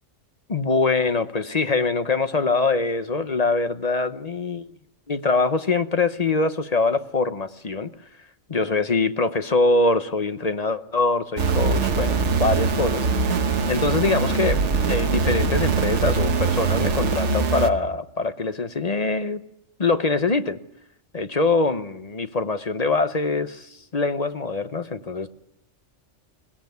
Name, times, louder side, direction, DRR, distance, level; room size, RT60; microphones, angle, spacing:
voice 1, 0.5-4.7 5.1-7.9 8.5-13.1 13.3-14.6 14.9-19.4 19.8-20.6 21.1-25.3, left 3 dB, 35° left, 10 dB, 1.0 m, -23 dB
sound 1, 11.4-17.7, right 5 dB, 70° right, 1.5 m, -22 dB
22.0 x 17.5 x 9.4 m, 0.80 s
omnidirectional pair, 1.2 m